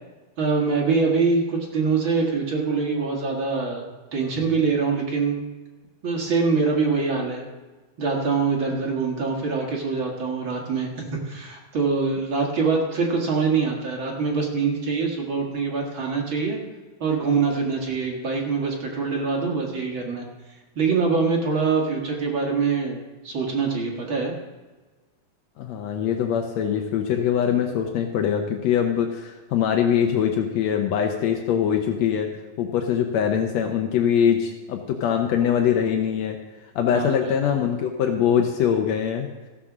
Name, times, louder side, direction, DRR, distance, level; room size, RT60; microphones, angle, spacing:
voice 1, 0.4-5.4 6.0-7.5 8.0-10.9 11.3-16.6 17.0-20.3 20.8-23.0 23.2-24.3 36.9-37.3, right 4 dB, 40° right, -1 dB, 2.0 m, -24 dB
voice 2, 25.6-32.3 32.6-36.4 36.7-39.3, left 8 dB, 85° left, 3 dB, 1.5 m, -23 dB
14.5 x 7.6 x 6.1 m, 1.2 s
omnidirectional pair, 4.3 m